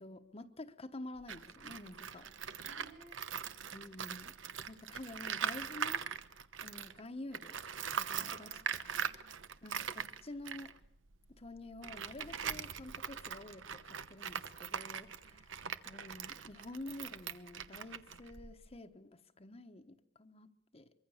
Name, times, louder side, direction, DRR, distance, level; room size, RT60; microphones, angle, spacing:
voice 1, 0.0-2.3 3.7-4.4 4.7-6.1 6.6-7.6 7.9-8.6 9.6-10.7 11.3-15.6 15.8-20.9, left 2 dB, 30° left, 1.1 m, -49 dB
Tools, 1.2-7.0 7.3-18.8, right 7 dB, 85° right, 1.0 m, -42 dB
voice 2, 2.6-3.6 8.1-9.4 15.2-15.6, right 2 dB, 50° right, 5.2 m, -60 dB
24.5 x 23.5 x 7.1 m
head